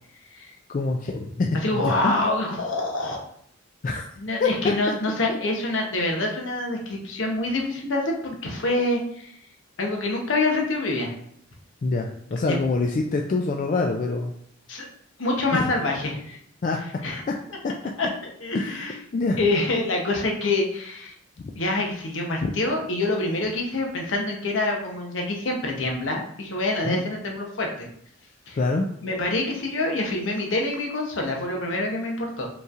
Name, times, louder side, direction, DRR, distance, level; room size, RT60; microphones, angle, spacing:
voice 1, 0.7-1.5 1.8-2.1 3.8-4.0 4.4-4.7 5.3-5.4 11.8-14.3 15.5-15.6 16.6-16.8 17.6-17.7 18.5-19.4 21.4-21.5 22.4-22.5 26.8-27.0 28.6-28.9, left 3 dB, 40° left, 1 dB, 0.3 m, -25 dB
voice 2, 1.6-3.2 4.2-9.3 9.8-11.1 12.5-12.6 14.7-14.9 15.2-16.4 17.0-17.2 18.0-18.1 18.4-18.9 19.4-21.1 21.6-27.9 28.5-28.6 29.0-32.5, left 2 dB, 70° left, 0 dB, 0.9 m, -26 dB
5.3 x 3.1 x 2.4 m, 0.68 s
head